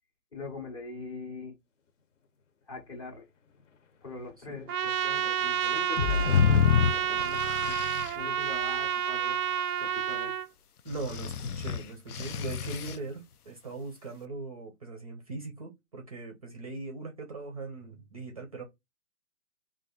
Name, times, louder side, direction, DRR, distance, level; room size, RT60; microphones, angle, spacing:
voice 1, 0.3-1.5 2.7-3.3 4.0-7.8 8.1-9.4 9.8-10.4, left 4 dB, 20° left, 0.7 m, -42 dB
sound 1, 3.0-3.1 3.4-8.9 9.4-9.6 10.0-10.2, left 5 dB, 55° left, 0.8 m, -38 dB
Trumpet, 4.7-10.5, right 9 dB, 80° right, 0.5 m, -30 dB
sound 2, 6.2-8.1 10.9-13.0, left 7 dB, 90° left, 0.6 m, -27 dB
voice 2, 10.8-18.6, right 3 dB, 25° right, 0.5 m, -40 dB
3.3 x 2.5 x 3.7 m
hypercardioid pair, 145°, 44 cm